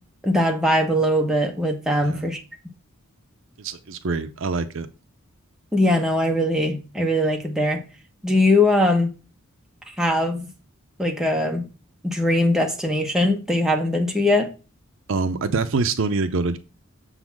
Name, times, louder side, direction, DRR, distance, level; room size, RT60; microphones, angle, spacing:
voice 1, 0.2-2.4 5.7-7.8 8.2-9.1 10.0-10.5 11.0-11.6 12.0-14.5, left 1 dB, 5° right, 1.2 m, -21 dB
voice 2, 3.6-4.9 15.1-16.6, right 4 dB, 60° right, 0.6 m, -25 dB
7.0 x 4.0 x 5.9 m
head